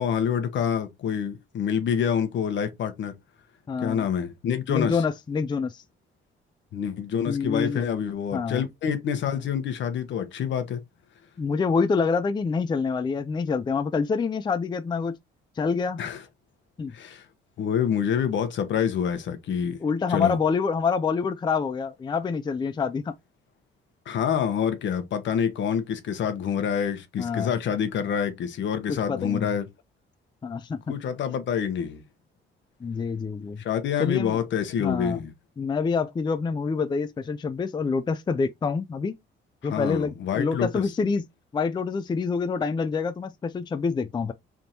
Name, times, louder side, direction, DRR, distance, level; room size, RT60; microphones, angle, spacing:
voice 1, 0.0-3.2 3.8-5.0 6.7-10.8 16.0-16.2 16.9-17.2 17.6-19.8 20.1-20.4 24.1-29.7 30.9-32.0 33.6-35.3 39.6-40.9, left 8 dB, 70° left, 1.0 m, -27 dB
voice 2, 3.7-4.1 4.7-5.8 7.3-7.8 8.3-8.7 11.4-15.2 15.6-16.0 16.8-16.9 19.8-23.1 27.2-27.6 29.1-29.5 30.4-30.8 32.8-33.6 34.0-34.4 34.8-35.2 35.6-39.1 39.6-41.2 41.5-44.3, left 5 dB, 20° left, 0.4 m, -26 dB
3.6 x 2.6 x 4.3 m
cardioid pair, 90°, 20 cm